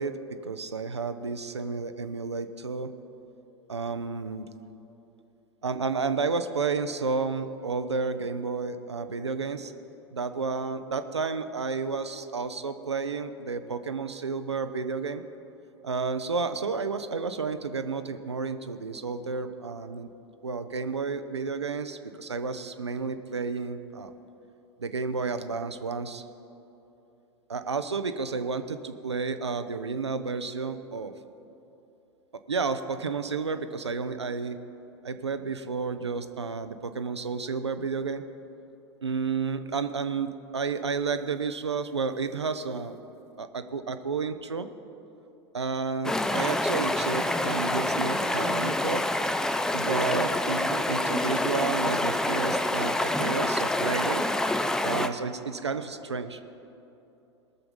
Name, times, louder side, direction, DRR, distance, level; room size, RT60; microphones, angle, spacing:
voice 1, 0.0-2.9 3.7-4.5 5.6-9.7 10.1-15.2 15.8-20.1 20.4-24.1 24.8-26.2 27.5-31.1 32.3-34.6 35.0-38.2 39.0-43.0 43.4-44.7 45.5-49.0 49.7-54.2 54.8-56.4, right 4 dB, 80° right, 10 dB, 0.7 m, -31 dB
Stream, 46.0-55.1, left 1 dB, 5° left, 0.4 m, -27 dB
19.5 x 7.0 x 5.2 m, 2.9 s
figure-of-eight pair, 90°, 14 cm